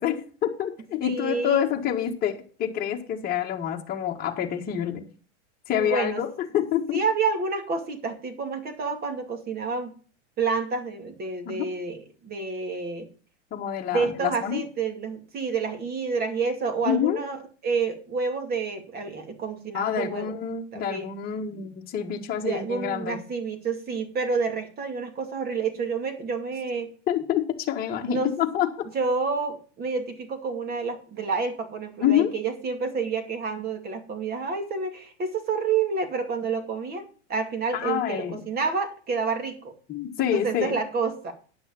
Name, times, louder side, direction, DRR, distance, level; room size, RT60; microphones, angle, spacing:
voice 1, 0.0-5.0 5.7-7.0 11.4-11.6 13.5-14.6 16.8-17.2 19.7-23.2 27.1-28.9 32.0-32.3 37.7-38.4 39.9-40.8, left 10 dB, 25° left, -1 dB, 1.6 m, -27 dB
voice 2, 1.0-1.7 5.8-6.2 6.9-9.9 10.4-13.1 13.9-20.4 20.7-21.1 22.2-26.9 28.1-28.3 28.9-39.7 40.3-41.3, right 5 dB, 25° right, 7 dB, 2.4 m, -29 dB
10.0 x 6.1 x 7.1 m, 0.40 s
supercardioid pair, 135°, 35 cm